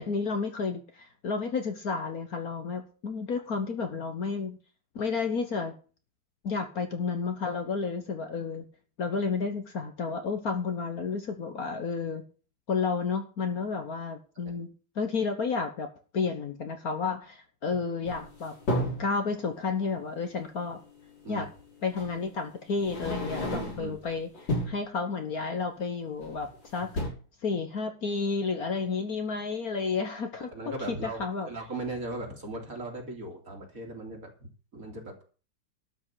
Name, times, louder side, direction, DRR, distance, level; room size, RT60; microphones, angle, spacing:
voice 1, 0.0-4.6 4.9-5.7 6.4-8.7 9.0-12.2 12.7-14.7 14.9-15.9 16.1-18.5 19.0-20.8 21.3-21.5 21.8-24.3 24.7-26.9 27.4-30.5 30.9-31.5, left 4 dB, 50° left, 6 dB, 1.6 m, -31 dB
sound 1, 18.1-19.1 20.7-20.8 22.0-22.2 22.7-24.0 24.3-24.9 26.2-26.6 26.8-27.1, left 1 dB, 70° left, 6.1 m, -32 dB
voice 2, 23.5-24.0 30.5-35.2, right 2 dB, 45° right, 2 dB, 3.0 m, -38 dB
12.5 x 5.6 x 8.2 m, 0.38 s
omnidirectional pair, 2.1 m